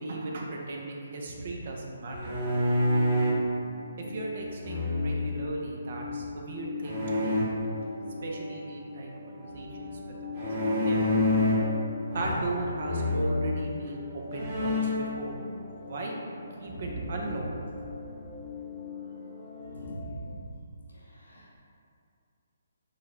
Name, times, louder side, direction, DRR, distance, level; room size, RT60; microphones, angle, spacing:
voice 1, 0.0-2.4 4.0-7.4 8.2-9.9 10.3-11.0 12.1-15.3 15.8-16.1 16.6-17.5, right 2 dB, 55° right, -1 dB, 0.5 m, -36 dB
sound 1, 1.6-20.0, left 4 dB, 40° left, 0.6 m, -41 dB
sound 2, 2.1-3.4 4.6-5.3 6.8-7.4 10.4-11.7 12.1-12.6 12.8-13.3 13.9-14.0 14.3-15.1, left 1 dB, 35° right, 1.1 m, -27 dB
voice 2, 16.6-17.1 19.8-20.3 21.3-21.6, right 2 dB, 85° left, -6 dB, 1.0 m, -39 dB
3.9 x 2.1 x 3.6 m, 2.4 s
figure-of-eight pair, 140°, 0 cm